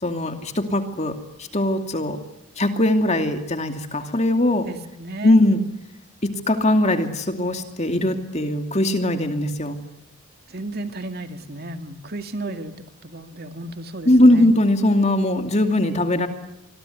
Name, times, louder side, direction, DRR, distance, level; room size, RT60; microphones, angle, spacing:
voice 1, 0.0-1.2 1.5-2.2 2.6-4.7 5.2-5.6 6.2-9.8 14.1-16.3, left 1 dB, 30° left, 6 dB, 2.6 m, -20 dB
voice 2, 4.7-5.4 10.5-12.7 13.0-14.5, right 2 dB, 45° right, 7 dB, 2.3 m, -33 dB
26.5 x 22.0 x 9.7 m, 0.90 s
head